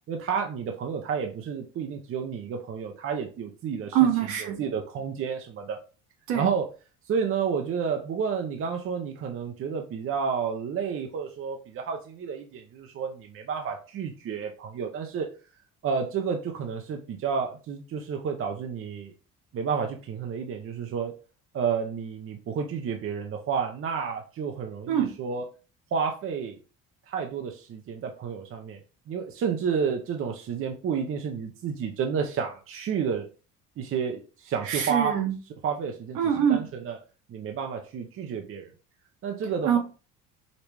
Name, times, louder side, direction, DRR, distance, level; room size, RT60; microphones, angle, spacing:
voice 1, 0.1-4.0 4.6-5.8 6.3-6.7 7.1-15.3 15.8-19.1 19.5-21.1 21.5-25.4 25.9-26.6 27.1-28.8 29.1-33.3 33.8-35.2 35.6-36.2 36.5-37.0 37.3-38.7 39.2-39.8, right 6 dB, 45° right, 3 dB, 0.7 m, -30 dB
voice 2, 3.9-4.6 6.3-6.5 24.9-25.1 34.6-35.3 36.1-36.7 39.6-39.8, right 9 dB, 70° right, 3 dB, 1.4 m, -24 dB
5.1 x 3.0 x 3.3 m, 0.34 s
cardioid pair, 105°, 30 cm